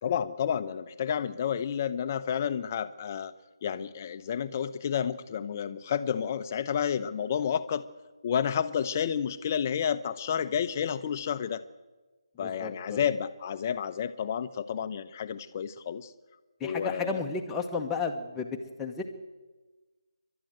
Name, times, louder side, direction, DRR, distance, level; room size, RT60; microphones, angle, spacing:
voice 1, 0.0-3.3 3.6-7.9 8.2-11.6 12.4-16.1 16.6-17.2, left 8 dB, 30° left, 11 dB, 0.8 m, -30 dB
voice 2, 12.3-13.1 16.6-19.0, left 4 dB, 10° left, 1 dB, 1.3 m, -33 dB
29.0 x 12.0 x 7.9 m, 1.3 s
figure-of-eight pair, 160°, 3 cm